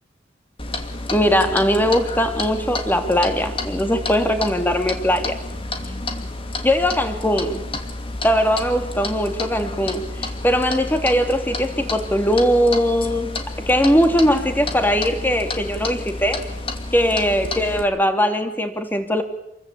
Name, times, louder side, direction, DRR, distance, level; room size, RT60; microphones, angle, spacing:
Clock, 0.6-17.8, left 2 dB, 30° left, 2.7 m, -30 dB
voice 1, 1.1-5.4 6.6-7.7 8.2-13.3 13.6-16.4 16.9-19.2, equal, 10° left, 6 dB, 3.0 m, -20 dB
28.0 x 22.5 x 8.6 m, 0.85 s
head